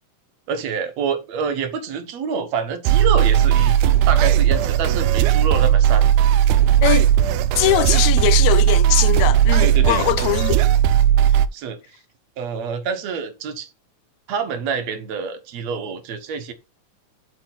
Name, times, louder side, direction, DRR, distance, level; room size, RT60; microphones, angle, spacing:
voice 1, 0.5-6.1 9.6-10.0 11.2-12.0 12.4-13.7 14.3-16.5, right 6 dB, 65° right, 2.2 m, -27 dB
sound 1, 2.8-11.5, right 10 dB, 85° right, 2.0 m, -16 dB
voice 2, 7.6-10.6, left 15 dB, 80° left, 1.8 m, -21 dB
7.7 x 4.6 x 5.8 m
omnidirectional pair, 3.5 m